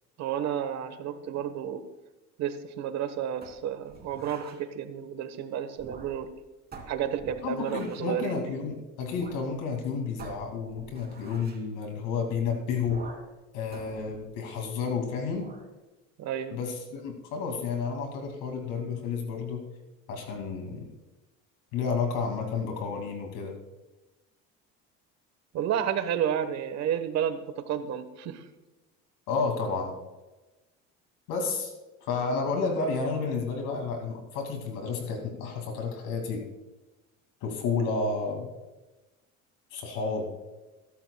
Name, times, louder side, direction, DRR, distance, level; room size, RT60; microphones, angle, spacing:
voice 1, 0.2-1.8 2.4-6.3 6.8-8.5 16.2-16.6 25.5-28.4, right 9 dB, 60° right, 10 dB, 1.3 m, -31 dB
sound 1, 3.4-4.6 5.7-6.3 6.7-8.1 9.1-9.4 9.7-9.8 10.2-11.6 12.8-13.4 13.7-14.8 15.3-15.7, right 4 dB, 30° right, 2.7 m, -46 dB
voice 2, 7.4-13.1 13.5-15.5 16.5-19.6 20.1-20.8 21.7-23.6 29.3-30.0 31.3-31.7 32.0-36.5 37.4-38.5 39.7-40.3, left 5 dB, 85° left, 2 dB, 2.5 m, -31 dB
21.5 x 12.0 x 2.3 m, 1.1 s
cardioid pair, 125°, 30 cm